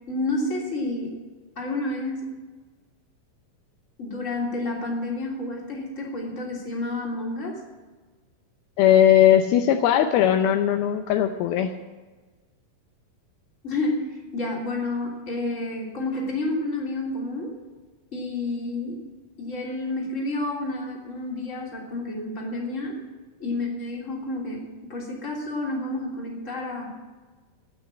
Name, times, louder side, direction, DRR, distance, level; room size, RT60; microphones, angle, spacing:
voice 1, 0.1-1.1 1.5-2.3 4.0-7.6 13.6-17.5 18.1-19.0 19.4-23.0 23.4-24.6 24.9-26.9, left 2 dB, 20° left, -2 dB, 3.0 m, -30 dB
voice 2, 8.8-11.7, left 10 dB, 80° left, 6 dB, 2.5 m, -19 dB
16.0 x 6.4 x 8.9 m, 1.3 s
omnidirectional pair, 4.5 m